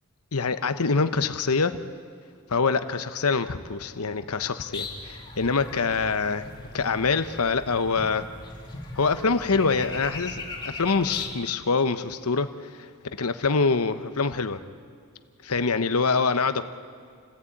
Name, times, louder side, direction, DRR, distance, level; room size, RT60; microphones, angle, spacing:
voice 1, 0.3-1.8 2.5-6.5 6.7-8.3 8.9-14.6 15.4-16.6, left 4 dB, 90° left, 11 dB, 1.0 m, -25 dB
sound 1, 4.7-11.3, left 3 dB, 20° left, 2.9 m, -39 dB
28.5 x 15.5 x 8.7 m, 2.2 s
head